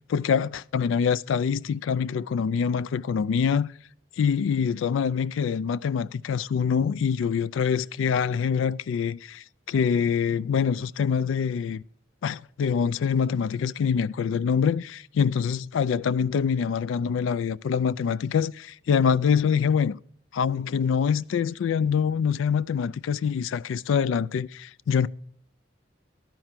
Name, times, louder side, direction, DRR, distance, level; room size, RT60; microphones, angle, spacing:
voice 1, 0.1-3.7 4.2-11.8 12.2-20.0 20.3-25.1, left 6 dB, 85° left, 0.3 m, -25 dB
12.0 x 4.5 x 7.4 m
head